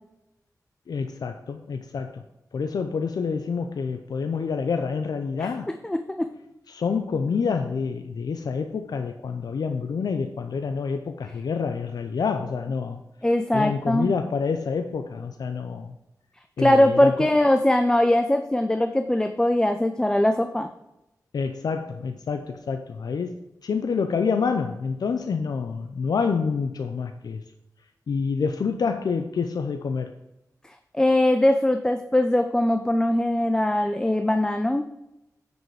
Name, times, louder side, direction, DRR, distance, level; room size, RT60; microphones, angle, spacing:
voice 1, 0.9-2.2 2.5-5.7 6.7-13.0 13.5-15.9 16.6-17.3 21.3-23.3 23.6-27.4 28.1-30.1, left 5 dB, 85° left, 6 dB, 0.6 m, -27 dB
voice 2, 5.8-6.3 13.2-14.1 16.6-20.7 30.9-34.8, left 1 dB, 10° left, 7 dB, 0.5 m, -21 dB
9.3 x 5.3 x 4.8 m, 0.91 s
wide cardioid pair, 100°, 7 cm